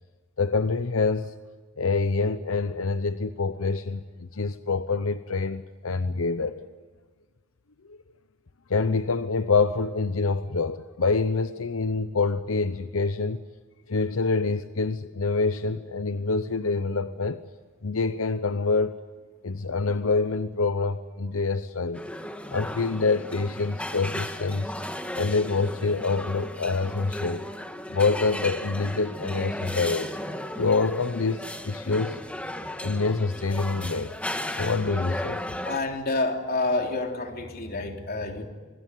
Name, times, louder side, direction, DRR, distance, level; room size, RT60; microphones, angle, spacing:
voice 1, 0.4-1.3 1.8-6.7 7.9-8.0 8.7-13.4 13.9-17.4 17.8-18.9 19.4-22.0 22.5-24.7 25.1-27.4 27.9-30.2 30.6-32.2 32.8-34.2 34.6-35.6, left 4 dB, 85° left, 0.9 m, -26 dB
sound 1, 21.9-35.8, left 1 dB, 5° left, 1.5 m, -35 dB
voice 2, 35.6-38.5, left 2 dB, 50° left, 3.4 m, -28 dB
25.5 x 21.5 x 9.4 m
head